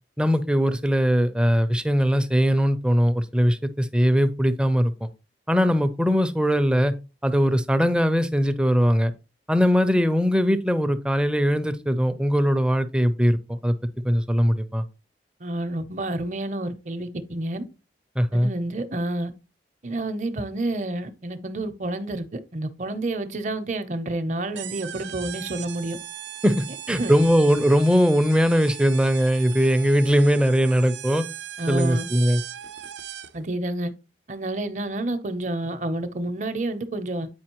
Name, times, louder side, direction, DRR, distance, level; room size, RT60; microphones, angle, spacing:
voice 1, 0.2-5.1 5.5-6.9 7.2-9.1 9.5-13.7 14.0-14.8 18.2-18.5 26.4-31.3 31.7-32.4, equal, 5° right, 0.4 m, -20 dB
voice 2, 15.4-17.6 18.3-19.3 19.8-26.0 26.9-27.1 31.6-32.1 33.3-33.9 34.3-37.3, right 1 dB, 40° right, 0.6 m, -29 dB
sound 1, 24.6-33.5, right 10 dB, 80° right, 0.6 m, -38 dB
8.6 x 4.9 x 2.9 m
head